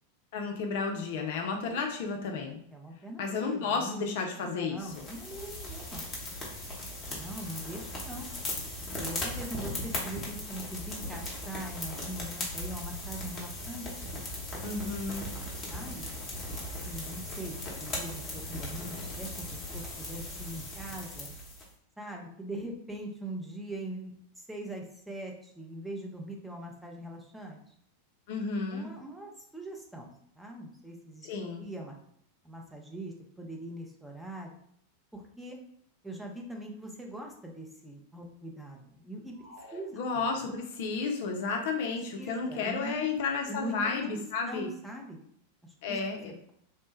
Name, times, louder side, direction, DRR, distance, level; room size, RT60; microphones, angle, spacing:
voice 1, 0.3-2.6 3.2-5.0 14.6-15.2 28.3-28.9 31.2-31.6 39.9-44.7 45.8-46.3, left 4 dB, 50° left, 2 dB, 0.4 m, -32 dB
voice 2, 2.7-4.0 4.4-6.0 7.1-8.3 9.0-13.9 15.7-16.1 16.6-21.3 22.0-27.7 28.7-30.1 30.4-31.3 31.6-32.0 32.4-34.6 35.1-35.6 36.0-39.3 39.7-40.2 42.2-43.1 43.5-43.8 44.0-44.2 44.5-45.2 45.6-46.0, right 1 dB, 5° right, 0 dB, 0.6 m, -42 dB
sound 1, 4.9-21.7, left 1 dB, 20° left, 0.9 m, -38 dB
sound 2, 39.3-40.8, left 2 dB, 65° right, 0.7 m, -53 dB
3.1 x 2.1 x 3.0 m, 0.68 s
figure-of-eight pair, 90°, 0 cm